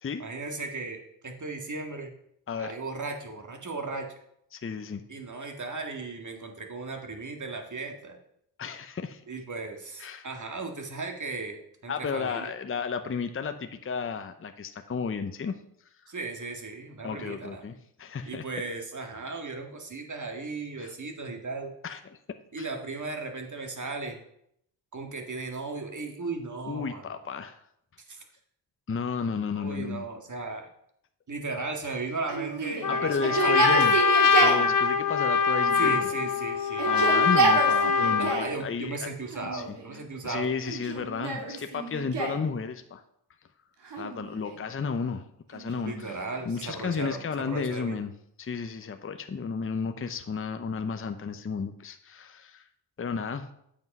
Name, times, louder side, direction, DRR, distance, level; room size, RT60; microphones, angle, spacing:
voice 1, 0.2-2.1 2.6-4.1 5.1-8.2 9.3-12.5 16.1-17.6 18.3-21.7 22.5-24.2 24.9-27.2 28.1-28.2 29.5-30.7 31.3-34.0 35.7-37.1 38.2-40.5 45.8-47.2 47.5-48.0, right 3 dB, 40° right, 3 dB, 2.0 m, -36 dB
voice 2, 4.5-5.0 8.6-9.2 10.0-10.3 11.9-15.5 17.0-18.4 20.8-20.9 21.8-22.2 22.6-22.7 26.7-27.6 28.9-30.1 32.9-34.0 34.4-36.1 36.8-39.1 39.4-39.8 40.2-43.0 44.0-46.2 46.4-48.1 48.4-52.6 53.0-53.5, left 5 dB, 30° left, 8 dB, 0.7 m, -33 dB
Yell, 32.3-34.7 35.5-36.3 36.7-38.6 39.3-40.0 40.7-42.5 43.8-44.7 45.5-47.3, right 3 dB, 65° right, 1.9 m, -30 dB
Trumpet, 32.8-38.5, left 5 dB, 45° left, 1.3 m, -23 dB
8.1 x 5.2 x 5.4 m, 0.73 s
supercardioid pair, 45°, 45 cm